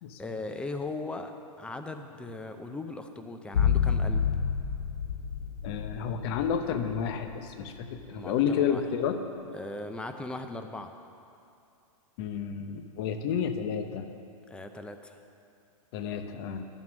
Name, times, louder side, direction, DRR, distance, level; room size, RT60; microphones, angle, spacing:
voice 1, 0.2-4.2 8.1-8.8 9.5-10.9 14.5-15.1, left 2 dB, 5° left, 7 dB, 0.4 m, -38 dB
sound 1, 3.5-8.0, left 7 dB, 80° left, 0.6 m, -29 dB
voice 2, 5.6-9.2 12.2-14.1 15.9-16.7, left 7 dB, 45° left, 8 dB, 0.8 m, -30 dB
10.5 x 7.4 x 6.1 m, 2.6 s
hypercardioid pair, 140°, 18 cm